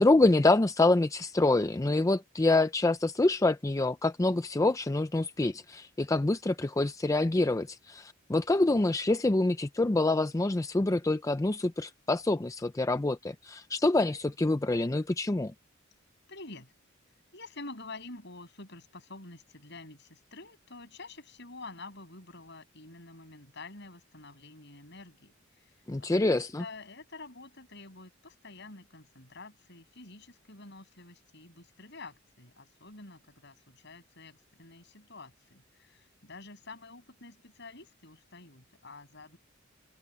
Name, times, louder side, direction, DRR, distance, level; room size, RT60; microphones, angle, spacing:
voice 1, 0.0-15.5 25.9-26.6, left 2 dB, 15° left, 0.4 m, -26 dB
voice 2, 16.3-16.7 17.3-25.7 26.0-39.4, left 3 dB, 60° left, 8.0 m, -48 dB
open air
head